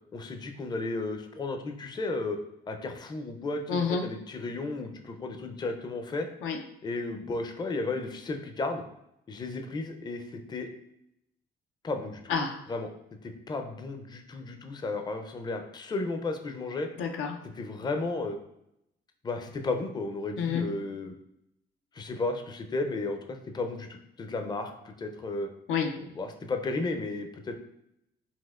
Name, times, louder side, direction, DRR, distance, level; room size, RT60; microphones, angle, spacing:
voice 1, 0.1-2.4 2.7-6.3 6.8-8.8 9.3-10.7 11.8-12.2 12.7-12.9 13.2-16.9 17.5-18.4 19.2-21.1 21.9-25.5 26.1-27.5, left 3 dB, 20° left, 5 dB, 0.4 m, -33 dB
voice 2, 3.7-4.1 6.4-6.6 12.3-12.6 17.0-17.4 20.4-20.7 25.7-26.0, left 5 dB, 85° left, 3 dB, 0.5 m, -29 dB
4.2 x 2.4 x 2.3 m, 0.79 s
cardioid pair, 90°, 20 cm